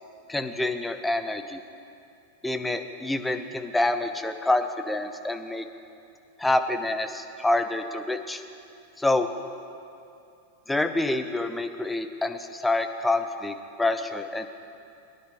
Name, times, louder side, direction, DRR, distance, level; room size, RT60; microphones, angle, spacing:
voice 1, 0.3-1.6 2.4-5.6 6.4-8.4 9.0-9.3 10.7-14.5, left 2 dB, 5° left, 7 dB, 0.7 m, -27 dB
21.0 x 10.0 x 3.0 m, 2.6 s
figure-of-eight pair, 90°, 0 cm